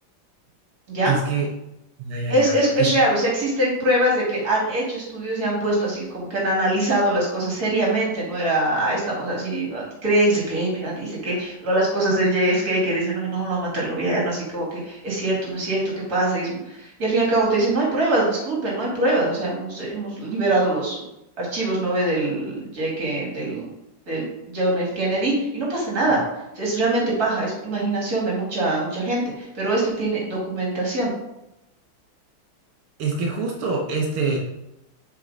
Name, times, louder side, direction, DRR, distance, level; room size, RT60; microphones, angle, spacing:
voice 1, 1.0-1.5 2.0-2.9 33.0-34.4, right 4 dB, 85° right, 0 dB, 1.8 m, -25 dB
voice 2, 2.3-15.8 16.1-21.0 21.4-23.7 24.1-26.2 26.5-31.1, right 1 dB, 45° right, -4 dB, 2.7 m, -23 dB
7.6 x 4.4 x 4.0 m, 0.89 s
omnidirectional pair, 2.3 m